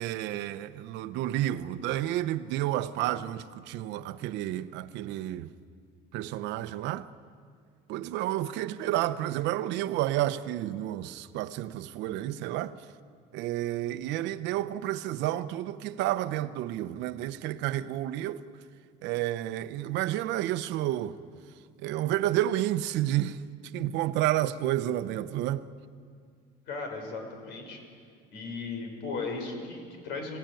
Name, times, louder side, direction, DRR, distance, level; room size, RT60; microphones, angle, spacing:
voice 1, 0.0-5.5 6.1-7.1 7.9-12.8 13.3-18.4 19.0-21.2 21.8-23.4 23.7-25.7, right 13 dB, 70° right, 0.9 m, -30 dB
voice 2, 26.7-27.8 28.3-30.4, left 4 dB, 70° left, 6.1 m, -36 dB
26.0 x 16.5 x 9.2 m
cardioid pair, 140°, 19 cm